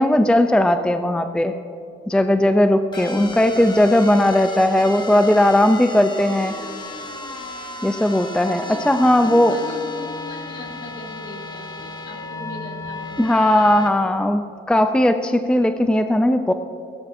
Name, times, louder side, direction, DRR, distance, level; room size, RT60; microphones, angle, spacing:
voice 1, 0.0-1.6 2.1-6.5 7.8-9.6 13.2-16.5, left 1 dB, 5° left, 8 dB, 0.5 m, -17 dB
sound 1, 2.9-13.9, left 2 dB, 20° left, 1.6 m, -34 dB
voice 2, 9.2-13.5, left 2 dB, 55° left, -1 dB, 3.5 m, -38 dB
18.0 x 17.0 x 2.7 m, 2.7 s
cardioid pair, 90°, 20 cm